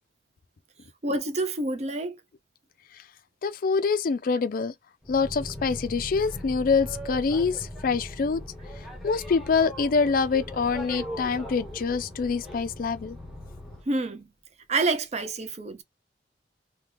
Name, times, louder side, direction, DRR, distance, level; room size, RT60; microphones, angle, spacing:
voice 1, 1.0-2.2 13.9-14.3 14.7-15.8, right 2 dB, 40° right, 0.6 m, -28 dB
voice 2, 3.4-4.7 5.1-8.4 9.0-13.2, left 5 dB, 55° left, 0.4 m, -25 dB
Boat Water vehicle, 5.0-13.9, left 1 dB, ahead, 0.8 m, -39 dB
2.9 x 2.2 x 3.3 m
head